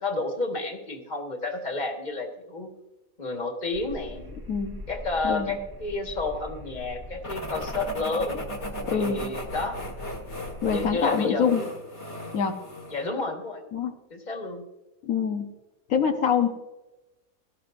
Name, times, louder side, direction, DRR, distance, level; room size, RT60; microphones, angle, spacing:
voice 1, 0.0-2.7 3.2-4.3 4.9-8.4 8.9-9.8 10.6-11.7 12.9-13.6 14.1-14.6, left 3 dB, 30° left, 3 dB, 1.7 m, -31 dB
sound 1, 3.7-11.0, equal, 20° right, 0.6 m, -42 dB
voice 2, 4.5-4.8 5.2-5.6 8.8-9.3 10.6-11.6 12.3-12.6 13.7-14.0 15.0-15.5 15.9-16.5, left 7 dB, 80° left, 4 dB, 1.3 m, -25 dB
sound 2, 7.2-13.1, left 1 dB, 50° left, 1.9 m, -37 dB
17.0 x 13.0 x 2.6 m, 1.1 s
omnidirectional pair, 1.5 m